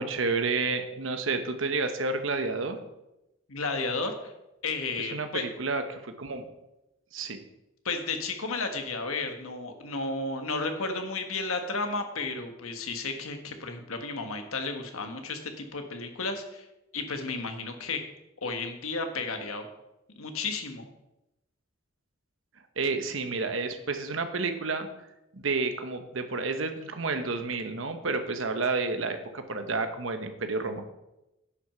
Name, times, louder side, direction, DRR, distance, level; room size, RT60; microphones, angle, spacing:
voice 1, 0.0-2.8 5.0-6.5 7.1-7.4 22.8-24.9 25.3-30.8, right 3 dB, 70° right, 7 dB, 1.0 m, -30 dB
voice 2, 3.5-4.3 4.6-5.4 7.8-16.6 16.9-18.0 18.4-19.7 20.2-20.9, left 3 dB, 85° left, 5 dB, 1.4 m, -33 dB
9.8 x 6.1 x 5.6 m, 0.93 s
head